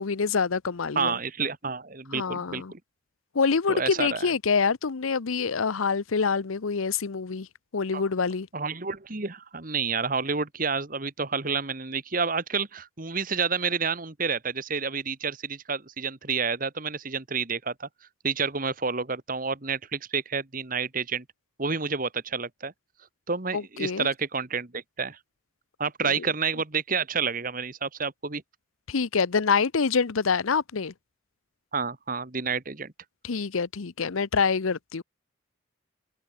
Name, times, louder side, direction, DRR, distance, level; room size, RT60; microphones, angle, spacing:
voice 1, 0.0-1.1 2.1-2.7 3.3-7.5 7.7-8.5 23.5-24.1 26.0-26.1 28.9-30.9 33.2-35.0, left 5 dB, 85° left, 0.7 m, -26 dB
voice 2, 0.9-2.8 3.7-4.3 7.9-8.0 8.5-17.9 18.2-21.2 21.6-22.7 23.3-25.2 25.8-28.4 31.7-32.9, right 5 dB, 40° right, 1.5 m, -29 dB
open air
head